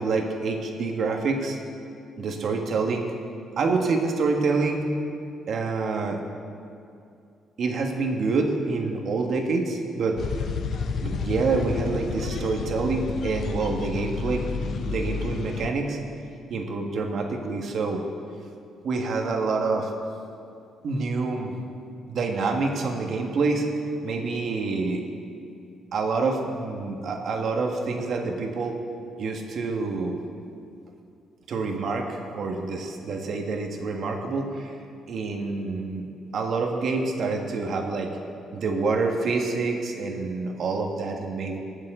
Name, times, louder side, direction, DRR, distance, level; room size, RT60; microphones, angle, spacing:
voice 1, 0.0-1.6 2.2-3.1 3.6-4.9 5.5-6.2 7.6-10.2 11.0-16.0 16.5-18.0 18.8-19.9 20.8-21.6 22.1-23.7 24.0-25.0 25.9-28.8 29.2-30.2 31.5-34.8 35.1-36.1 36.3-38.1 38.5-41.6, right 3 dB, 60° right, 2 dB, 1.6 m, -27 dB
sound 1, 10.2-15.7, left 5 dB, 60° left, 0.6 m, -30 dB
21.0 x 7.4 x 3.8 m, 2.5 s
cardioid pair, 90°, 0 cm